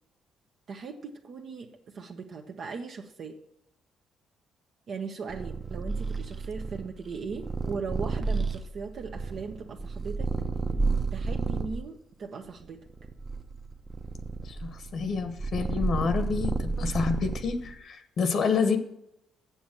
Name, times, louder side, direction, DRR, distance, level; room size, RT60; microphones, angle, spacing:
voice 1, 0.7-3.4 4.9-10.3 11.1-12.8, right 5 dB, 60° right, 2 dB, 1.0 m, -38 dB
Purr, 5.3-11.8 12.5-17.7, right 4 dB, 30° right, 0.9 m, -31 dB
voice 2, 14.4-18.8, left 5 dB, 60° left, 9 dB, 1.2 m, -28 dB
7.1 x 7.1 x 7.6 m, 0.79 s
cardioid pair, 90°, 0 cm